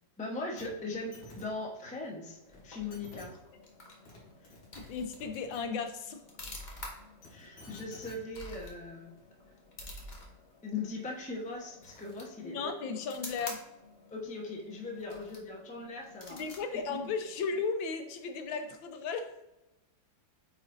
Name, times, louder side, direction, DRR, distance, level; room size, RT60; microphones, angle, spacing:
voice 1, 0.2-3.4 4.4-4.5 7.3-9.1 10.6-12.7 14.1-16.4 16.7-17.0, left 3 dB, 10° left, -1 dB, 0.5 m, -40 dB
sound 1, 0.6-0.7 0.9-1.4 2.5-2.6 2.9-3.3 3.8-4.2 4.4-5.6 7.0-8.2 9.2-9.3, left 2 dB, 60° left, 2.5 m, -51 dB
sound 2, 2.2-17.8, left 2 dB, 30° left, 0.9 m, -50 dB
voice 2, 4.9-6.2 12.4-13.6 16.3-19.3, left 5 dB, 90° left, 7 dB, 1.5 m, -35 dB
8.8 x 4.1 x 2.6 m, 0.95 s
omnidirectional pair, 2.1 m